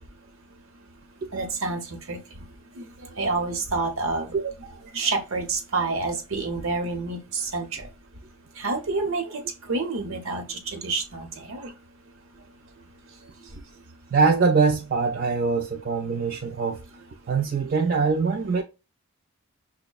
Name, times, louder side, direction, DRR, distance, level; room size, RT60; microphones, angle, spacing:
voice 1, 1.3-2.4 2.8-2.9 3.2-4.3 4.9-7.9 8.6-11.7, right 3 dB, 70° right, 0.8 m, -28 dB
voice 2, 14.1-16.8 17.3-18.6, right 4 dB, 40° right, 0.3 m, -23 dB
6.1 x 2.1 x 2.3 m
head